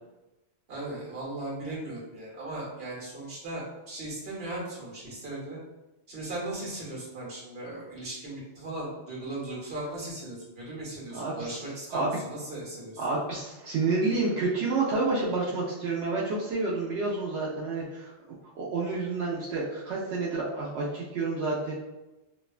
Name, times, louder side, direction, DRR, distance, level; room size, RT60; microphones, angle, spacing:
voice 1, 0.7-5.6 6.1-13.1, right 2 dB, 60° right, -5 dB, 1.3 m, -37 dB
voice 2, 11.1-11.6 11.9-12.2 13.0-18.1 18.6-21.7, right 3 dB, 85° right, -6 dB, 0.9 m, -29 dB
3.0 x 2.2 x 2.3 m, 1.0 s
omnidirectional pair, 1.1 m